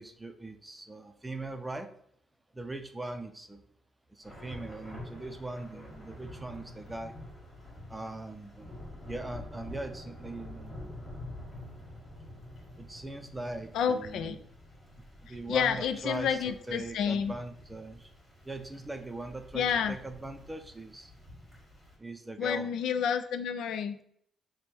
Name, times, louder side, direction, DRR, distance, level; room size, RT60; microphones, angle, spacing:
voice 1, 0.0-1.9 2.5-3.7 4.1-7.1 7.9-8.7 9.1-10.9 12.8-14.4 15.3-18.1 18.4-21.1 22.0-22.7, right 2 dB, 15° right, 7 dB, 0.5 m, -40 dB
Thunder / Rain, 4.2-21.9, left 1 dB, 10° left, 1.5 m, -48 dB
voice 2, 13.7-14.4 15.3-17.3 19.5-19.9 22.4-24.0, left 7 dB, 80° left, 9 dB, 0.3 m, -30 dB
3.4 x 2.2 x 4.3 m, 0.65 s
cardioid pair, 90°, 0 cm